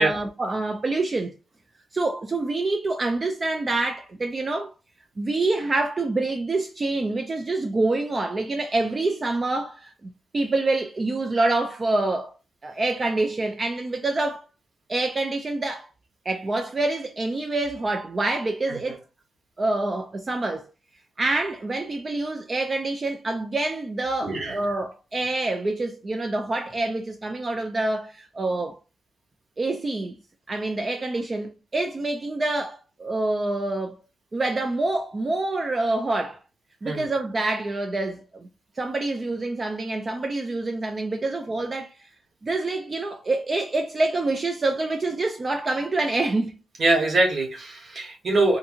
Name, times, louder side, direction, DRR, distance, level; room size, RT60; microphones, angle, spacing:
voice 1, 0.0-1.4 1.9-4.7 5.2-12.4 12.6-14.4 14.9-15.9 16.3-19.0 19.6-20.7 21.2-28.8 29.6-30.2 30.5-34.0 34.3-36.4 36.8-38.5 38.8-42.1 42.4-46.6, right 2 dB, 25° right, 0.3 m, -26 dB
voice 2, 24.2-24.6 36.8-37.1 46.8-48.6, right 2 dB, 50° right, 1.0 m, -23 dB
2.7 x 2.6 x 2.4 m
wide cardioid pair, 145°, 0 cm